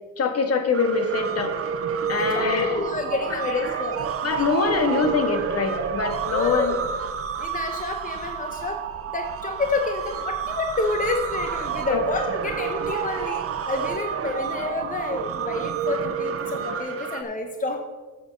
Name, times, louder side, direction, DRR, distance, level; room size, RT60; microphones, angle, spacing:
voice 1, 0.2-1.5 2.1-2.8 3.3-3.8 4.2-6.8 11.9-12.0 17.0-17.1, left 4 dB, 55° left, 6 dB, 1.6 m, -24 dB
sound 1, 0.7-17.2, right 7 dB, 50° right, 0.8 m, -30 dB
voice 2, 2.7-4.0 4.4-4.5 4.9-5.0 6.3-6.8 7.4-8.8 9.1-17.8, left 3 dB, 25° left, 4 dB, 1.1 m, -29 dB
7.8 x 6.5 x 6.6 m, 1.3 s
cardioid pair, 90°, 30 cm